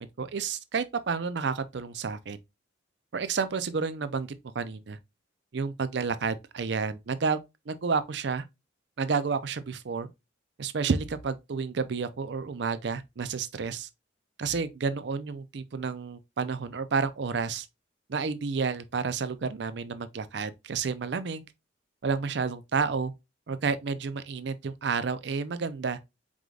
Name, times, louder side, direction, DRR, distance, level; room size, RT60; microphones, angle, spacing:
voice 1, 0.0-2.4 3.1-5.0 5.5-7.4 7.7-8.5 9.0-10.1 10.6-13.9 14.4-17.7 18.1-21.5 22.0-23.1 23.5-26.0, right 5 dB, 60° right, 0.5 m, -30 dB
4.9 x 3.8 x 2.3 m
head